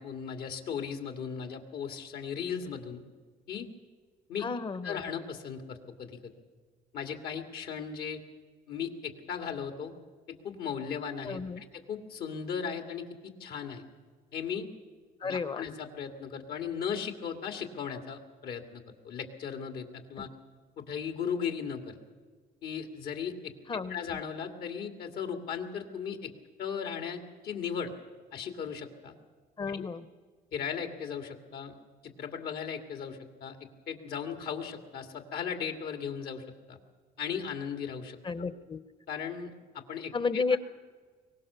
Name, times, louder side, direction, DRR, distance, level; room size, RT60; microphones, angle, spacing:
voice 1, 0.0-3.0 3.5-3.7 4.3-4.5 4.8-6.3 6.9-8.2 8.7-9.9 10.4-13.8 14.3-14.7 15.2-20.3 20.8-22.0 22.6-23.5 23.9-26.3 26.6-27.9 28.3-29.1 29.7-29.9 30.5-31.8 32.0-36.8 37.2-38.2 39.1-40.6, left 7 dB, 65° left, 6 dB, 2.5 m, -37 dB
voice 2, 4.4-5.0 11.2-11.6 15.2-15.6 23.7-24.2 29.6-30.1 38.2-38.8 40.1-40.6, left 4 dB, 30° left, 13 dB, 1.0 m, -32 dB
23.0 x 18.5 x 7.0 m, 1.5 s
cardioid pair, 110°, 17 cm